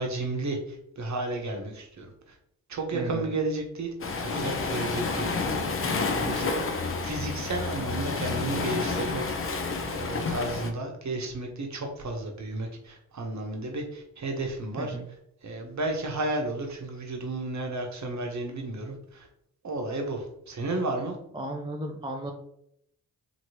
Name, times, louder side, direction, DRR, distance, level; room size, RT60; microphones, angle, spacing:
voice 1, 0.0-2.4 2.7-3.9 4.2-6.5 7.0-15.0 15.4-19.3 19.6-21.2, right 2 dB, 40° right, 3 dB, 1.0 m, -33 dB
voice 2, 2.9-3.3 14.8-15.0 21.3-22.3, right 1 dB, 10° right, 2 dB, 0.4 m, -34 dB
Waves surf, 4.0-10.7, left 4 dB, 30° left, 0.6 m, -29 dB
2.9 x 2.8 x 2.8 m, 0.73 s
hypercardioid pair, 45°, 46 cm